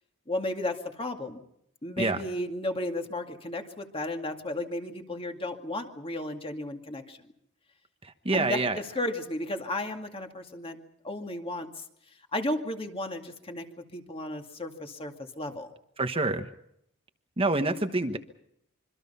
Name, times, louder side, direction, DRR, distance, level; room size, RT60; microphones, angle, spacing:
voice 1, 0.3-1.4 1.8-7.2 8.3-10.8 11.0-11.8 12.3-13.7 13.9-15.7, left 1 dB, 25° left, 4 dB, 2.3 m, -34 dB
voice 2, 8.0-8.8 16.0-16.5 17.4-18.2, right 2 dB, 25° right, 6 dB, 1.3 m, -27 dB
26.0 x 24.5 x 5.7 m, 0.75 s
head